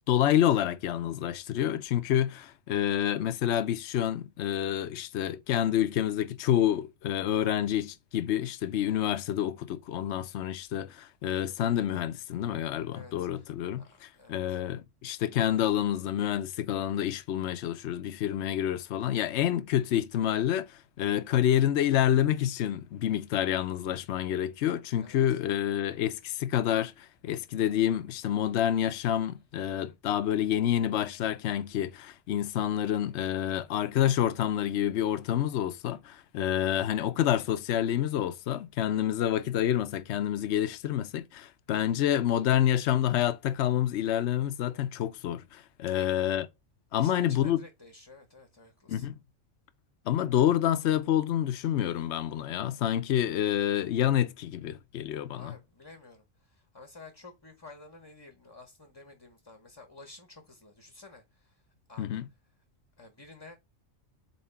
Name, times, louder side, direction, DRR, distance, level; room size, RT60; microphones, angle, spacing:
voice 1, 0.1-46.5 46.9-47.6 48.9-49.2 50.1-55.5 62.0-62.3, left 11 dB, 65° left, 0.9 m, -28 dB
voice 2, 12.9-13.5 13.8-14.6 25.0-25.2 45.9-46.1 46.9-49.1 55.3-61.6 61.9-62.2 63.0-63.6, left 3 dB, 20° left, 0.9 m, -51 dB
4.3 x 4.1 x 5.5 m
omnidirectional pair, 1.3 m